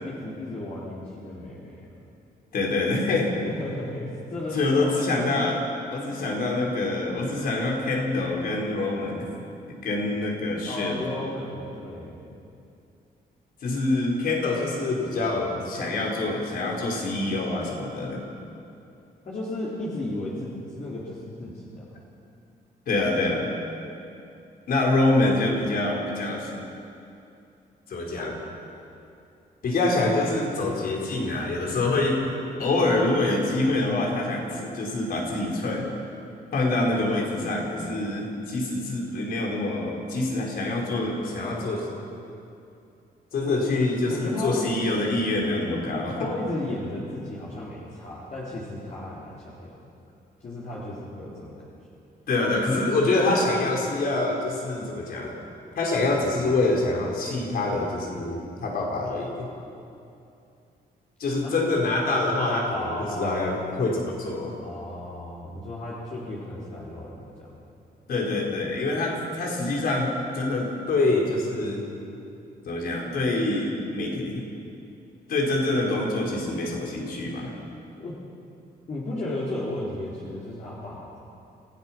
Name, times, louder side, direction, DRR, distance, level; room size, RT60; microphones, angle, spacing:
voice 1, 0.0-1.8 3.4-5.3 6.0-6.3 10.6-12.3 19.2-22.0 43.4-43.5 44.1-44.7 46.2-49.8 50.4-51.7 61.4-61.5 62.7-63.4 64.6-67.5 78.0-78.2 78.9-81.3, left 1 dB, 45° left, -7 dB, 3.8 m, -34 dB
voice 2, 2.5-3.3 4.5-5.6 5.9-9.3 9.7-11.0 13.6-18.2 22.9-23.5 24.7-26.5 27.9-28.4 29.6-32.2 32.6-35.9 36.5-41.9 43.3-46.3 52.3-55.3 55.8-59.5 61.2-62.9 63.1-64.5 68.1-71.8 72.6-74.4 75.3-77.5, left 2 dB, 65° left, -1 dB, 4.8 m, -25 dB
27.5 x 17.0 x 6.1 m, 2.6 s
cardioid pair, 130°, 17 cm